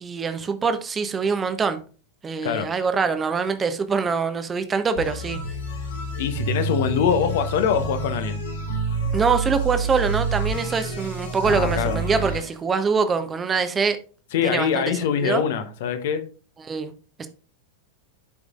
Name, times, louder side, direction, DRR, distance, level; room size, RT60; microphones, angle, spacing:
voice 1, 0.0-1.8 2.2-5.4 9.1-14.0 14.4-14.8 15.2-15.4 16.6-16.9 17.2-17.3, right 5 dB, 20° right, 0.8 m, -24 dB
sound 1, 5.0-12.5, right 3 dB, 70° left, 2.6 m, -28 dB
voice 2, 6.2-8.4 11.4-12.0 14.3-16.2, left 7 dB, 55° left, 0.9 m, -23 dB
12.0 x 4.9 x 2.5 m
figure-of-eight pair, 90°, 0 cm